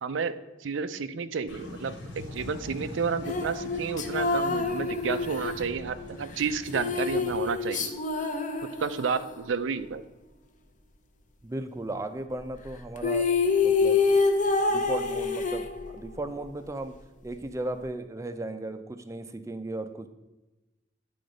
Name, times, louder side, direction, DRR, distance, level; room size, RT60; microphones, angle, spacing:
voice 1, 0.0-7.9 8.6-10.0, right 5 dB, 85° right, 11 dB, 0.5 m, -31 dB
sound 1, 1.5-7.3, left 1 dB, 80° left, 1.7 m, -42 dB
sound 2, 3.2-9.4 12.7-12.8 13.0-16.2, left 4 dB, 40° left, 0.7 m, -27 dB
voice 2, 11.4-13.3 13.6-14.0 14.7-16.9 17.2-20.1, right 2 dB, 15° right, 8 dB, 0.4 m, -36 dB
9.4 x 3.9 x 5.1 m, 1.1 s
head